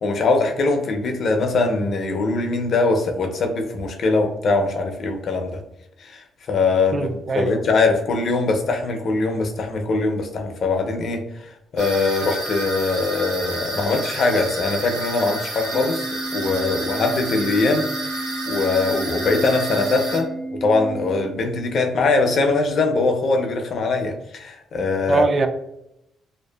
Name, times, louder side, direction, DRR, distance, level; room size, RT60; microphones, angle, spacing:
voice 1, 0.0-5.6 6.0-11.2 11.7-20.3 20.6-25.2, left 3 dB, 60° left, 4 dB, 0.5 m, -22 dB
voice 2, 6.9-7.6 25.1-25.5, right 3 dB, 40° right, 8 dB, 0.3 m, -21 dB
sound 1, 11.8-20.2, right 1 dB, 90° right, 0.9 m, -30 dB
Organ, 15.7-21.7, right 2 dB, 70° right, 1.1 m, -32 dB
2.6 x 2.4 x 2.2 m, 0.83 s
cardioid pair, 90°, 0 cm